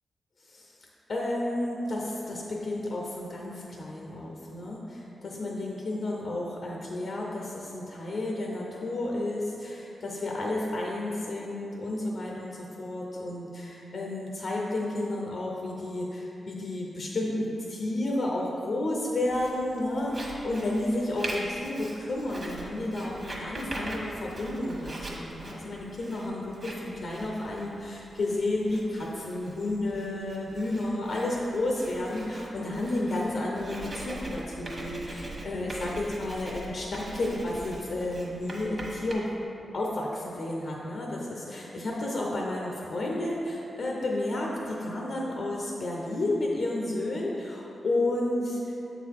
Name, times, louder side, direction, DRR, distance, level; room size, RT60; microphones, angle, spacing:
voice 1, 1.1-39.2 39.7-48.7, left 1 dB, 70° left, -2 dB, 0.7 m, -31 dB
Writing, 19.3-39.1, right 1 dB, 40° right, 1.2 m, -42 dB
6.8 x 3.9 x 4.6 m, 3.0 s
cardioid pair, 75°, 0 cm